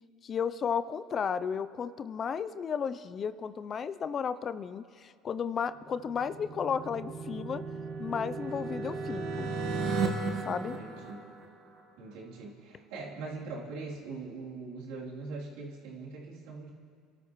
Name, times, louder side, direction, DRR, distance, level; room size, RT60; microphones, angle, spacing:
voice 1, 0.2-7.6 8.0-9.5 10.4-10.7, left 7 dB, 40° left, 13 dB, 0.5 m, -33 dB
sound 1, 5.9-11.8, right 4 dB, 55° right, 1.6 m, -35 dB
voice 2, 10.5-11.2 12.0-16.7, right 3 dB, 75° right, -4 dB, 3.2 m, -42 dB
28.0 x 13.0 x 3.1 m, 2.2 s
supercardioid pair, 100°, 0 cm